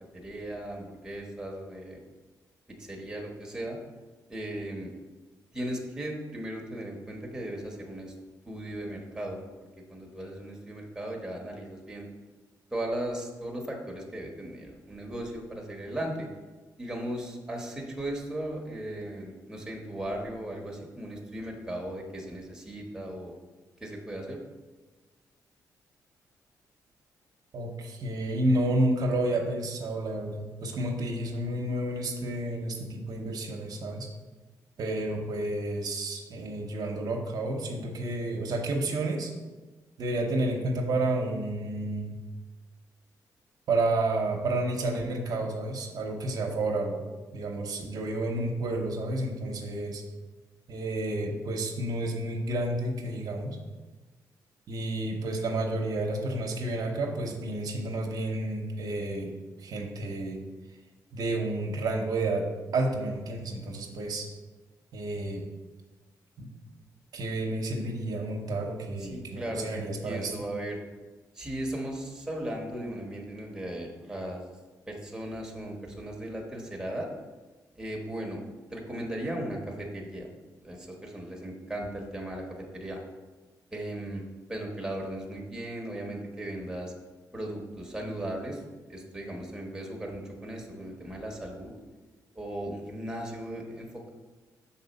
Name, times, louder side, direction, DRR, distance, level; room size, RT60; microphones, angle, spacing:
voice 1, 0.1-2.0 2.7-3.8 4.3-4.9 5.5-8.1 8.4-9.4 9.9-12.1 12.7-16.3 16.8-23.4 23.8-24.4 69.0-70.8 71.3-74.5 74.9-77.1 77.8-78.4 78.7-80.3 80.6-82.4 82.7-83.0 83.7-84.2 84.5-86.9 87.3-88.6 88.9-91.7 92.3-94.1, right 1 dB, 10° right, -1 dB, 1.1 m, -37 dB
voice 2, 27.5-34.1 34.8-39.3 40.0-42.2 43.7-47.0 47.3-50.0 50.7-53.6 54.7-59.3 59.6-60.4 61.1-62.5 62.7-64.3 64.9-65.4 66.4-66.5 67.1-70.3, right 2 dB, 70° right, 1 dB, 0.8 m, -30 dB
6.0 x 4.2 x 4.1 m, 1.3 s
cardioid pair, 100°, 7 cm